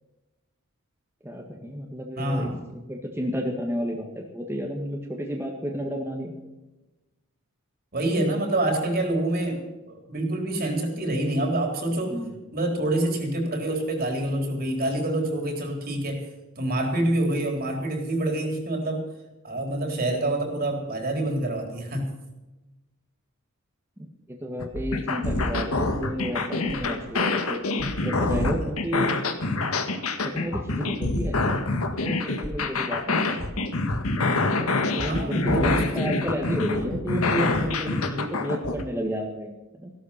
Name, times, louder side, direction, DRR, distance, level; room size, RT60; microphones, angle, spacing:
voice 1, 1.2-6.3 12.1-12.3 24.3-27.6 28.0-29.1 30.2-33.5 34.6-39.9, equal, 10° right, -1 dB, 1.8 m, -31 dB
voice 2, 2.2-2.6 7.9-12.2 12.5-16.3 16.6-19.0 19.4-22.1 35.0-36.1, right 1 dB, 45° right, 2 dB, 4.0 m, -26 dB
sound 1, 24.6-38.8, left 3 dB, 90° left, 1.9 m, -26 dB
17.0 x 12.5 x 5.8 m, 1.1 s
head